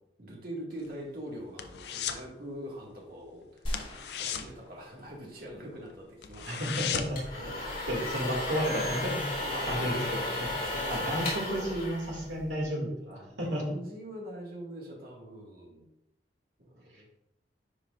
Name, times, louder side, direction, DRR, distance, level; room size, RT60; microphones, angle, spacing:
voice 1, 0.2-3.6 4.2-6.7 7.3-7.8 9.4-11.1 13.3-15.9 16.6-17.1, right 1 dB, 55° right, -2 dB, 1.7 m, -43 dB
sound 1, 0.7-2.3 2.6-2.9 3.1-3.3 3.6-5.5 5.9-6.0 6.2-7.3 7.7-7.8, left 8 dB, 65° left, 0.5 m, -36 dB
sound 2, 3.7-5.9, equal, 30° left, 1.3 m, -41 dB
voice 2, 6.5-7.2 7.9-9.2 9.7-13.6, equal, 85° right, -2 dB, 2.1 m, -32 dB
sound 3, 6.9-12.7, left 2 dB, 50° left, 2.4 m, -34 dB
9.9 x 4.9 x 2.4 m, 0.85 s
head